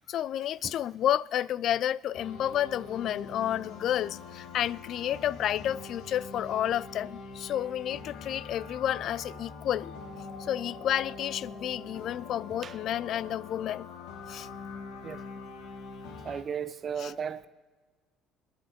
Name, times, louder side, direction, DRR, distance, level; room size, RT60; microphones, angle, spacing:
voice 1, 0.1-9.9 10.4-13.9 14.3-14.5 17.0-17.1, left 11 dB, 60° left, 0.4 m, -30 dB
sound 1, 2.1-16.4, left 4 dB, 80° left, 1.8 m, -44 dB
voice 2, 16.2-17.5, right 7 dB, 40° right, 0.7 m, -35 dB
27.0 x 10.0 x 4.3 m
cardioid pair, 105°, 0 cm